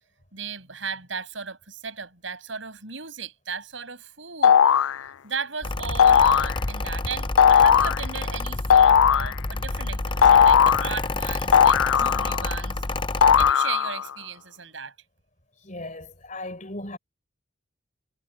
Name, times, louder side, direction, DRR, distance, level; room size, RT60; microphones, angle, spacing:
voice 1, 0.3-12.8 13.4-14.9, right 6 dB, 70° right, 7.1 m, -36 dB
sound 1, 4.4-5.0 6.0-6.5 7.4-8.0 8.7-9.3 10.2-10.9 11.5-12.5 13.2-14.0, left 8 dB, 90° left, 0.4 m, -17 dB
Mechanical fan, 5.6-13.5, left 2 dB, 25° left, 0.6 m, -29 dB
voice 2, 15.6-17.0, left 2 dB, 40° left, 5.2 m, -37 dB
head